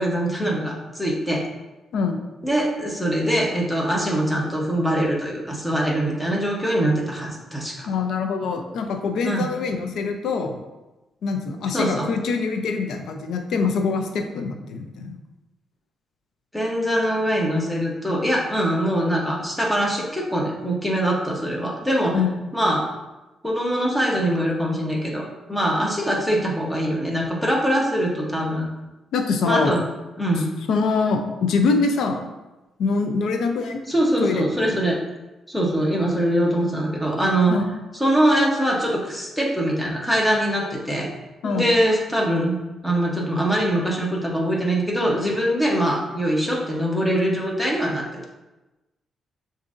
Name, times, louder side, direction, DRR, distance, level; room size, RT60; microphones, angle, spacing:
voice 1, 0.0-1.4 2.4-7.9 9.2-9.5 11.7-12.1 16.5-22.2 22.5-22.9 23.4-28.6 29.4-29.8 30.2-30.5 33.9-35.0 35.5-37.5 38.0-41.1 41.4-42.6 42.8-48.3, right 1 dB, 5° left, -2 dB, 1.0 m, -23 dB
voice 2, 7.9-10.6 11.2-15.2 22.1-22.3 29.1-29.7 30.7-32.2 32.8-33.8 34.2-34.8 37.5-37.6 41.4-41.7, left 4 dB, 80° left, 5 dB, 0.5 m, -24 dB
6.8 x 2.7 x 2.5 m, 1.1 s
cardioid pair, 110°, 0 cm